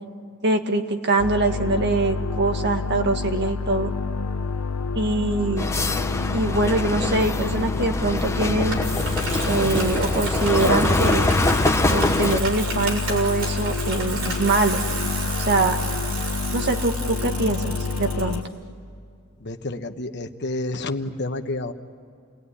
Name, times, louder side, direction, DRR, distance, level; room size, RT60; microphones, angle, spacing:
voice 1, 0.4-3.9 5.0-5.7 6.3-8.8 9.5-11.3 11.9-14.8 15.5-15.7 16.5-18.4, right 2 dB, 50° right, 5 dB, 1.8 m, -23 dB
sound 1, 1.2-18.4, left 4 dB, 85° left, 0.7 m, -28 dB
sound 2, 5.6-12.4, left 2 dB, 15° left, 0.9 m, -24 dB
Bicycle, 8.7-18.3, right 2 dB, 75° right, 7.2 m, -32 dB
voice 2, 19.4-21.7, left 2 dB, 50° left, 7 dB, 1.2 m, -29 dB
29.0 x 20.0 x 9.9 m, 2.4 s
head